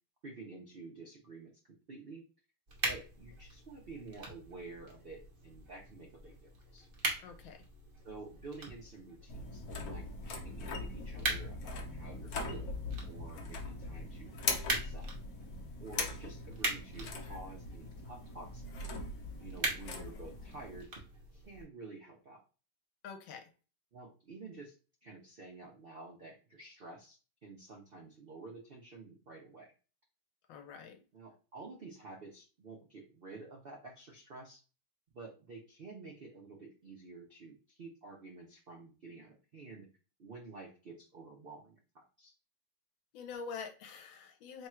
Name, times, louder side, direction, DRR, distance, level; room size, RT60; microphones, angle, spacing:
voice 1, 0.2-2.2 2.8-6.9 8.0-12.7 13.0-15.1 15.8-18.6 19.4-20.9 21.3-22.4 23.9-24.8 25.0-29.7 31.1-34.6 35.1-39.9 40.2-42.3, right 3 dB, 80° right, 0 dB, 0.5 m, -50 dB
sound 1, 2.7-21.6, right 2 dB, 40° right, 0.8 m, -43 dB
voice 2, 7.2-7.6 23.0-23.5 30.5-31.0 43.1-44.7, left 5 dB, 80° left, 7 dB, 1.5 m, -46 dB
sound 2, 9.3-20.8, left 3 dB, 60° left, 1.1 m, -41 dB
3.6 x 2.3 x 4.3 m, 0.34 s
omnidirectional pair, 2.1 m